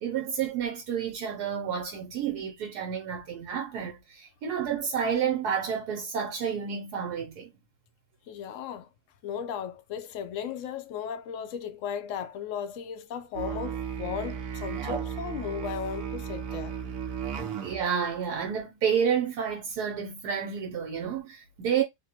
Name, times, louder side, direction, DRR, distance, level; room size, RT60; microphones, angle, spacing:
voice 1, 0.0-7.5 17.6-21.8, right 7 dB, 80° right, 1.3 m, -30 dB
voice 2, 8.3-8.9 9.2-16.8, left 8 dB, 65° left, 0.8 m, -36 dB
Musical instrument, 13.4-17.9, right 8 dB, 65° right, 1.0 m, -34 dB
3.6 x 2.2 x 2.7 m
omnidirectional pair, 1.7 m